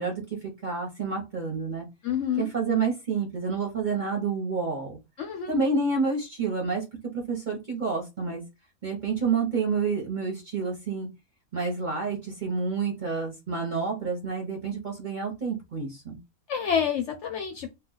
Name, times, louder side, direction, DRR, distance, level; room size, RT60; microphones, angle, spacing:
voice 1, 0.0-1.9 2.4-5.0 5.5-6.8 7.1-8.4 8.8-11.1 11.5-16.2, right 4 dB, 40° right, 0.7 m, -29 dB
voice 2, 2.0-2.5 5.2-5.6 16.5-17.8, left 8 dB, 65° left, 0.7 m, -28 dB
2.4 x 2.2 x 3.7 m
omnidirectional pair, 1.5 m